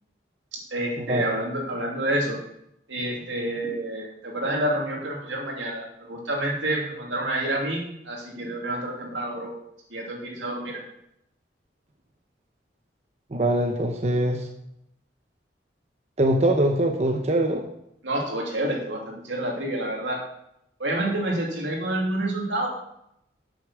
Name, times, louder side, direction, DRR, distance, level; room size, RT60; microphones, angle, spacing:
voice 1, 0.7-2.4 2.9-9.5 9.9-10.8 18.0-20.2 20.8-22.7, right 1 dB, 85° right, -1 dB, 2.8 m, -28 dB
voice 2, 13.3-14.5 16.2-17.6, right 1 dB, 35° right, 3 dB, 0.8 m, -23 dB
8.5 x 6.6 x 6.3 m, 0.79 s
head